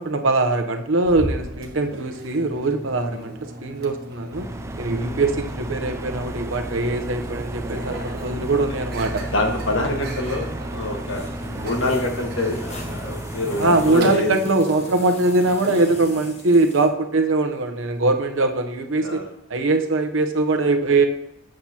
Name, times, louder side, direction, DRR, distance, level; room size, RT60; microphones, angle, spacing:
voice 1, 0.0-4.5 4.8-9.2 13.6-19.2 19.5-21.1, right 2 dB, 80° right, 6 dB, 0.8 m, -21 dB
Microwave oven, 1.1-16.1, equal, 55° right, 1.3 m, -36 dB
sound 1, 4.3-14.0, right 2 dB, 15° right, 0.3 m, -33 dB
voice 2, 7.7-8.0 9.3-10.5 10.7-14.4 19.0-19.3, left 2 dB, 75° left, 2 dB, 1.4 m, -26 dB
sound 2, 9.1-16.9, left 2 dB, 35° left, 1.3 m, -40 dB
8.1 x 7.5 x 2.9 m, 0.87 s
head